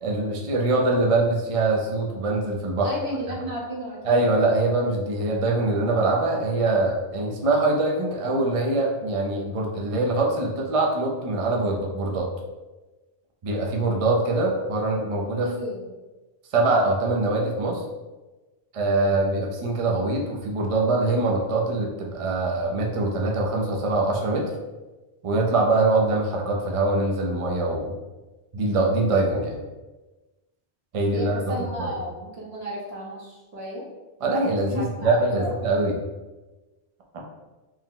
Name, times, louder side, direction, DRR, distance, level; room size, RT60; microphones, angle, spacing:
voice 1, 0.0-2.9 4.0-12.3 13.4-15.5 16.5-17.8 18.7-24.5 25.2-27.9 28.5-29.6 30.9-31.4 34.2-36.0, right 2 dB, 45° right, 0 dB, 0.5 m, -23 dB
voice 2, 2.8-4.2 15.3-15.9 31.1-33.8 34.7-35.5, right 1 dB, 70° right, -3 dB, 1.2 m, -33 dB
4.4 x 2.1 x 3.7 m, 1.2 s
omnidirectional pair, 1.1 m